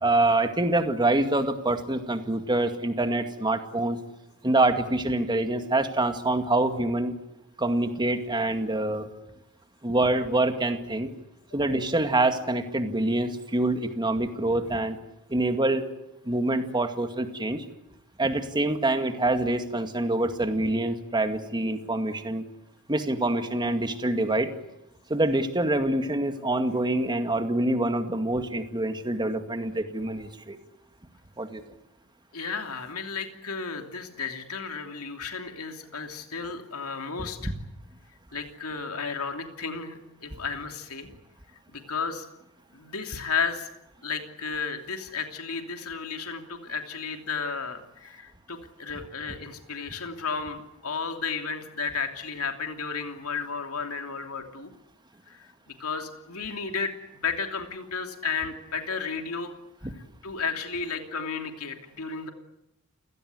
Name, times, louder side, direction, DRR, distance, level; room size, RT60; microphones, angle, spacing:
voice 1, 0.0-4.0 4.4-7.1 7.6-9.1 9.8-11.1 11.5-15.0 15.3-15.8 16.3-17.6 18.2-22.4 22.9-24.5 25.1-30.6 31.4-31.6 37.4-37.5, right 2 dB, 20° right, 7 dB, 2.2 m, -25 dB
voice 2, 32.3-37.5 38.3-41.1 41.7-42.3 42.7-43.7 44.0-54.7 55.3-59.5 59.8-59.9 60.2-62.3, left 5 dB, 75° left, 5 dB, 3.0 m, -33 dB
29.0 x 17.5 x 9.7 m, 0.88 s
head